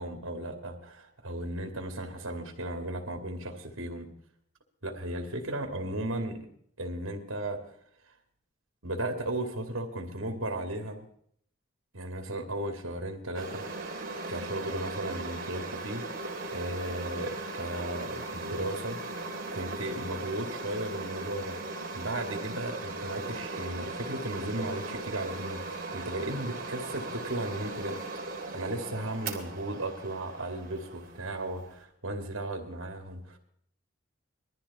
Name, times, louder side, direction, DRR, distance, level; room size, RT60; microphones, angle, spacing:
voice 1, 0.0-4.1 4.8-6.4 6.8-7.6 8.8-11.0 11.9-13.6 14.3-16.0 16.5-19.0 19.5-21.6 21.9-28.0 28.5-33.4, right 1 dB, 75° right, 5 dB, 2.5 m, -35 dB
sound 1, 13.3-31.8, right 2 dB, 45° right, 3.4 m, -38 dB
21.0 x 13.5 x 4.2 m, 0.66 s
head